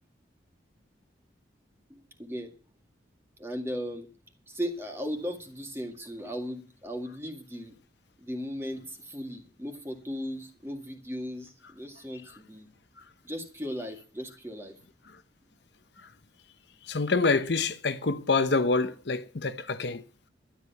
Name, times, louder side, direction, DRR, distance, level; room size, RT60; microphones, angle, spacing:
voice 1, 1.9-2.5 3.4-4.1 4.5-7.7 8.2-12.7 13.2-14.8, equal, 15° right, 2.0 m, -37 dB
voice 2, 16.9-20.0, left 3 dB, 65° left, 0.8 m, -26 dB
12.5 x 10.5 x 5.8 m
head